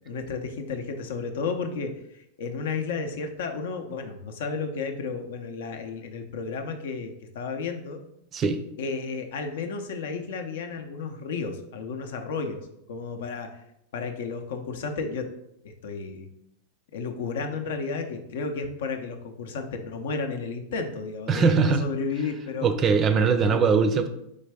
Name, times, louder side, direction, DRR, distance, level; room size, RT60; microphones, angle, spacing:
voice 1, 0.0-8.0 8.8-13.6 13.9-15.2 15.6-16.3 16.9-22.7 23.4-23.6, left 4 dB, 75° left, 6 dB, 0.6 m, -32 dB
voice 2, 21.3-21.8 22.6-24.1, right 5 dB, 30° right, 9 dB, 0.4 m, -21 dB
4.0 x 3.2 x 3.4 m, 0.80 s
hypercardioid pair, 125°, 0 cm